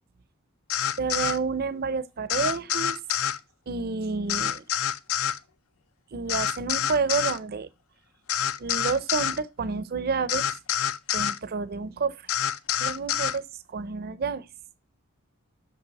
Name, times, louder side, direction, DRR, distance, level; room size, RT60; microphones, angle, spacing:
sound 1, 0.7-1.4 2.3-3.4 4.3-5.4 6.3-7.4 8.3-9.4 10.3-11.4 12.3-13.4, left 10 dB, 70° left, 0.5 m, -27 dB
voice 1, 1.0-3.0 3.7-4.6 6.1-7.7 8.6-10.6 11.1-12.3 12.8-14.5, right 4 dB, 45° right, 0.5 m, -29 dB
6.1 x 5.4 x 4.0 m
head